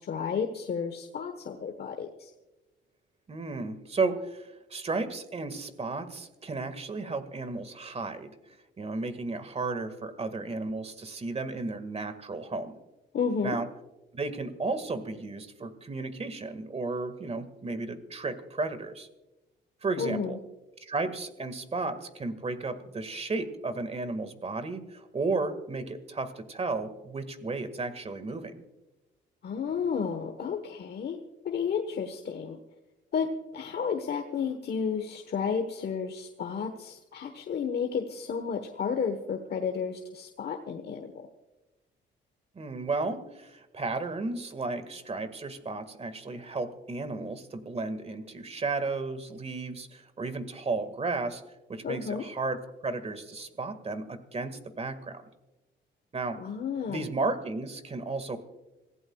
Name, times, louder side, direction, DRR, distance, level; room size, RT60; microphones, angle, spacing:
voice 1, 0.0-2.3 13.1-13.6 20.0-20.4 29.4-31.2 31.4-32.6 33.1-41.3 51.8-52.2 56.4-57.1, left 6 dB, 55° left, 5 dB, 1.2 m, -32 dB
voice 2, 3.3-8.4 8.8-12.8 13.4-13.7 14.1-19.1 19.8-20.4 20.8-28.6 42.6-51.4 51.7-52.6 52.8-55.2 56.1-56.4 56.9-58.4, right 3 dB, 30° right, 11 dB, 1.8 m, -33 dB
26.0 x 16.0 x 2.3 m, 1.0 s
cardioid pair, 90°, 20 cm